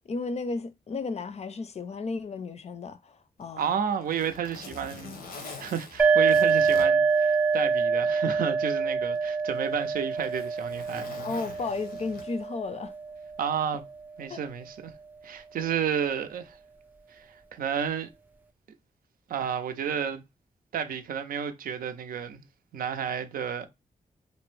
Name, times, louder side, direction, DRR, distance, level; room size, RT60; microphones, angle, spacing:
voice 1, 0.1-3.8 11.2-12.9 14.3-14.4, left 4 dB, 50° left, 0.5 m, -34 dB
Zipper (clothing), 3.4-7.9 8.3-8.4 9.1-12.6 13.8-14.0, left 4 dB, 85° left, 0.7 m, -45 dB
voice 2, 3.6-11.1 13.4-13.8 14.2-14.9 15.2-16.6 17.1-18.1 19.3-20.2 20.7-22.4 22.7-23.7, right 8 dB, 75° right, 0.4 m, -31 dB
sound 1, 6.0-13.5, right 5 dB, 10° right, 0.3 m, -26 dB
2.6 x 2.1 x 3.1 m
supercardioid pair, 45°, 15 cm